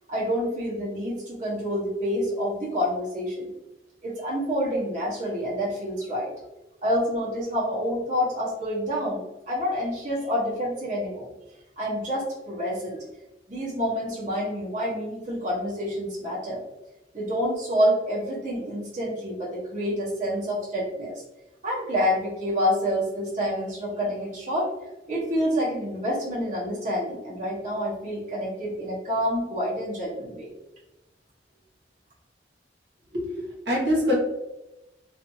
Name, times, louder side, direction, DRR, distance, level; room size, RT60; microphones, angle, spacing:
voice 1, 0.1-3.5 4.0-6.3 6.8-11.3 11.8-13.0 13.5-16.6 17.1-21.2 21.6-24.7 25.1-30.5, equal, 45° right, -8 dB, 0.9 m, -28 dB
voice 2, 33.1-34.1, left 1 dB, 80° right, -4 dB, 1.1 m, -25 dB
2.5 x 2.5 x 2.6 m, 1.0 s
head